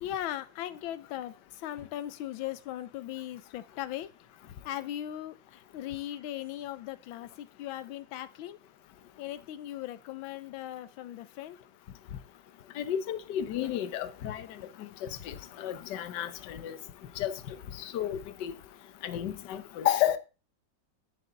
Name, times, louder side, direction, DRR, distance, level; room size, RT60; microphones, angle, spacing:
voice 1, 0.0-4.3 4.6-8.6 9.2-11.6, left 12 dB, 90° left, 1.5 m, -38 dB
voice 2, 12.8-14.5 14.8-16.8 17.2-17.3 17.8-18.5 19.0-20.2, left 11 dB, 65° left, 1.4 m, -32 dB
10.5 x 8.7 x 3.9 m
omnidirectional pair, 2.1 m